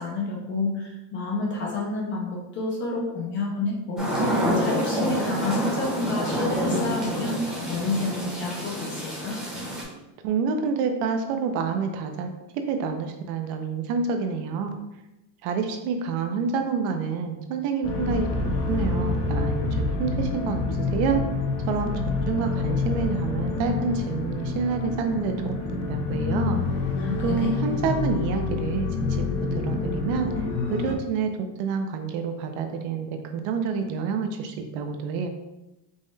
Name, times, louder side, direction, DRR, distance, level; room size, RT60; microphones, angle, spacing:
voice 1, 0.0-9.4 27.0-27.5, left 3 dB, 25° left, -2 dB, 0.4 m, -29 dB
sound 1, 4.0-9.8, equal, ahead, 0.8 m, -27 dB
voice 2, 10.2-12.3 12.5-14.8 15.4-18.3 18.6-21.2 21.7-21.9 22.3-26.6 27.2-29.3 29.5-30.3 30.7-31.3 31.6-35.3, right 5 dB, 55° right, 6 dB, 0.5 m, -28 dB
sound 2, 17.8-31.0, left 3 dB, 65° left, 0.8 m, -27 dB
5.3 x 2.1 x 3.2 m, 0.96 s
cardioid pair, 165°, 49 cm